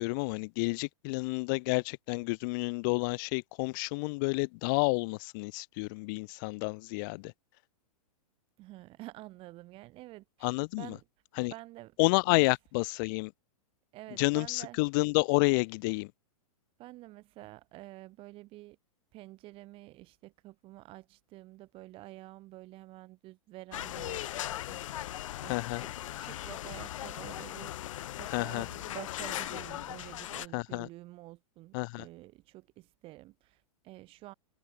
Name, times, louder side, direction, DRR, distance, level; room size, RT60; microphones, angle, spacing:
voice 1, 0.0-7.3 10.4-11.0 11.4-11.5 12.0-13.3 14.2-16.1 25.4-25.8 28.3-28.7 30.5-30.9 31.7-32.0, left 29 dB, 35° left, 0.6 m, -30 dB
voice 2, 8.6-11.1 11.4-12.0 12.3-12.4 13.9-14.8 16.8-18.8 19.1-27.7 28.1-34.3, right 18 dB, 30° right, 7.8 m, -49 dB
sound 1, 23.7-30.5, left 13 dB, 60° left, 1.9 m, -39 dB
hypercardioid pair, 155°, 18 cm